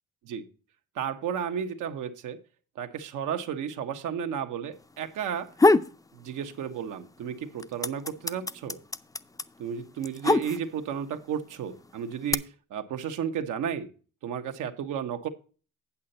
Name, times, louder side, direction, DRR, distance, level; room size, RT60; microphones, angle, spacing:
voice 1, 0.9-2.4 2.7-5.5 6.1-8.8 9.6-13.9 14.2-15.3, right 8 dB, 85° right, 6 dB, 1.2 m, -33 dB
sound 1, 5.3-6.0 6.4-7.1 7.3-10.9 11.7-12.3, left 2 dB, 10° left, 0.5 m, -24 dB
8.6 x 7.9 x 4.1 m, 0.38 s
cardioid pair, 90°, 30 cm